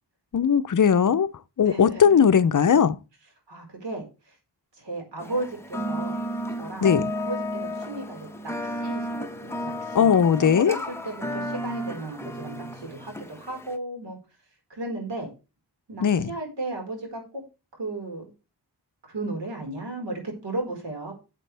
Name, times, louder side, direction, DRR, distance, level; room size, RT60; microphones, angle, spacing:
voice 1, 0.3-1.3 1.6-3.0 6.8-7.1 9.9-10.8 16.0-16.3, left 7 dB, 50° left, 0.7 m, -19 dB
voice 2, 1.6-2.1 3.5-4.3 4.8-6.2 6.5-8.5 8.8-10.3 10.6-14.2 14.7-15.3 15.9-17.4 17.8-18.3 19.0-21.1, right 2 dB, 85° right, 4.8 m, -35 dB
sound 1, 5.2-13.8, equal, 5° left, 1.0 m, -33 dB
13.5 x 7.6 x 3.4 m
wide cardioid pair, 140°, 41 cm